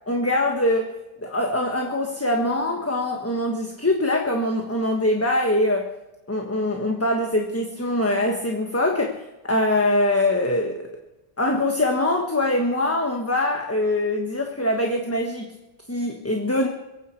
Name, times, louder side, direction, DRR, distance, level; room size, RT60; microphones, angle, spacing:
voice 1, 0.1-5.9 6.3-9.2 9.5-10.8 11.4-15.6 15.9-16.7, left 1 dB, 15° left, 2 dB, 1.3 m, -23 dB
26.5 x 9.3 x 4.6 m, 1.0 s
omnidirectional pair, 1.2 m